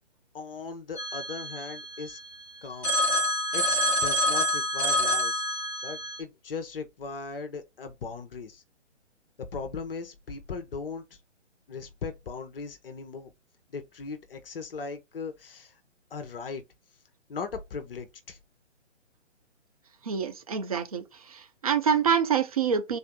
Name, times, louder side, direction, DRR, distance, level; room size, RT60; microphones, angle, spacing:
voice 1, 0.3-2.2 2.6-2.9 3.5-5.4 5.8-8.6 9.4-11.0 11.7-13.3 13.7-15.7 16.1-16.6 17.3-18.4, left 4 dB, 50° left, 0.8 m, -38 dB
Telephone, 1.0-2.4 2.8-6.2, left 1 dB, 5° left, 1.1 m, -27 dB
voice 2, 20.1-21.0 21.3-23.0, right 7 dB, 30° right, 0.5 m, -26 dB
3.8 x 2.6 x 3.6 m
figure-of-eight pair, 145°, 37 cm